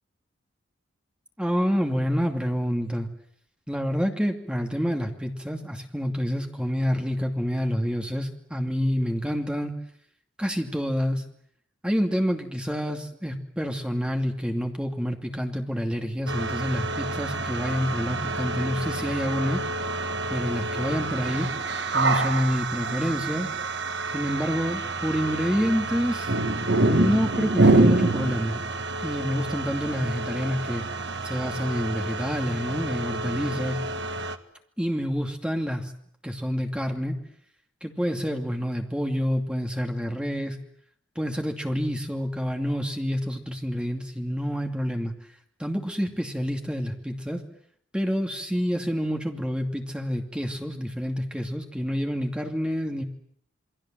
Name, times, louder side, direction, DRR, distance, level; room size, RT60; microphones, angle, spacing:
voice 1, 1.4-3.1 3.7-9.7 10.4-11.2 11.8-19.6 20.3-21.5 21.9-23.5 24.1-26.3 26.9-28.6 29.0-30.8 31.2-33.8 34.8-35.9 36.2-37.1 37.8-40.6 41.2-45.1 45.6-47.4 47.9-53.0, equal, 5° right, 3 dB, 2.6 m, -28 dB
sound 1, 16.3-34.4, right 2 dB, 60° right, 1.6 m, -27 dB
28.5 x 22.0 x 7.6 m, 0.67 s
head